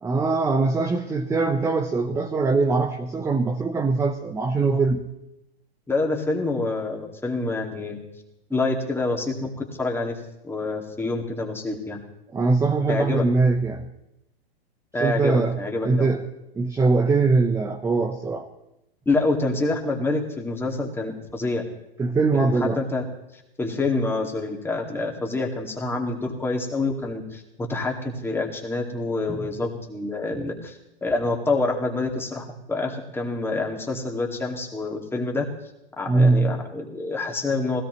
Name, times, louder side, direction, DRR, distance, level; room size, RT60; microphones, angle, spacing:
voice 1, 0.0-5.0 12.3-13.9 15.0-15.6 15.8-16.2 16.6-18.5 22.0-22.8 30.4-30.5 36.1-36.6, right 3 dB, 10° right, 5 dB, 0.7 m, -22 dB
voice 2, 5.9-8.0 8.5-9.5 9.8-10.2 10.4-12.0 12.9-13.2 14.9-16.1 19.1-21.6 22.3-23.0 23.6-35.5 36.0-37.8, left 2 dB, 5° left, 1 dB, 2.1 m, -27 dB
20.5 x 16.5 x 3.1 m, 0.88 s
hypercardioid pair, 115°, 31 cm